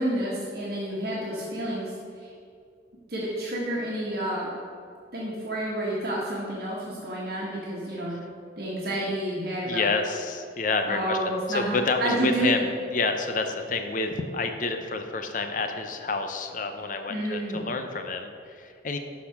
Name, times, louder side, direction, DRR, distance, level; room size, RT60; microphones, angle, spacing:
voice 1, 0.0-1.9 3.1-4.5 5.1-8.2 8.6-9.9 10.8-12.6 17.1-17.6, right 1 dB, 55° right, -5 dB, 1.5 m, -29 dB
voice 2, 9.7-19.0, left 3 dB, 45° left, 6 dB, 0.7 m, -29 dB
11.5 x 4.2 x 5.9 m, 2.3 s
head